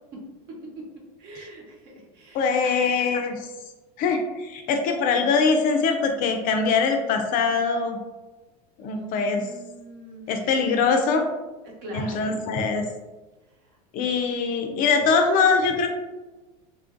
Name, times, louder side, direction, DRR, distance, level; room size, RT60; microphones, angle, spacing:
voice 1, 1.2-2.8 8.9-10.5 11.6-12.3 13.7-13.8, right 2 dB, 55° right, -1 dB, 0.9 m, -42 dB
voice 2, 2.3-3.5 4.0-8.0 8.8-9.4 10.3-11.3 11.9-12.8 13.9-15.9, left 5 dB, 45° left, 5 dB, 0.4 m, -22 dB
3.0 x 2.5 x 2.5 m, 1.1 s
supercardioid pair, 115°, 20 cm